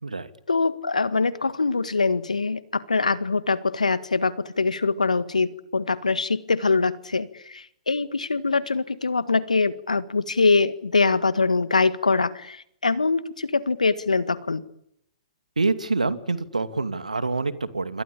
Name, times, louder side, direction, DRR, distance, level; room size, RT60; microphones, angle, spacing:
voice 1, 0.5-14.6, left 4 dB, 80° left, 15 dB, 1.7 m, -23 dB
voice 2, 15.6-18.0, right 3 dB, 85° right, 11 dB, 2.5 m, -26 dB
28.0 x 24.5 x 8.6 m, 0.77 s
figure-of-eight pair, 120°, 4 cm